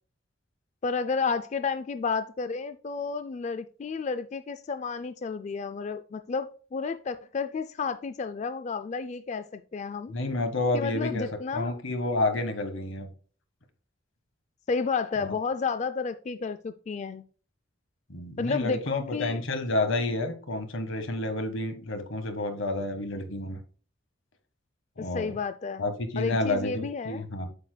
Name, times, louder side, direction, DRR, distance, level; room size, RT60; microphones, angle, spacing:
voice 1, 0.8-10.1 10.7-11.8 14.7-17.3 18.4-19.4 25.0-25.9 26.2-27.3, left 5 dB, 35° left, 0.3 m, -31 dB
voice 2, 10.1-11.3 11.5-13.1 18.1-23.6 25.0-25.3 25.8-27.5, left 2 dB, 85° left, 1.5 m, -30 dB
8.4 x 6.7 x 2.2 m
head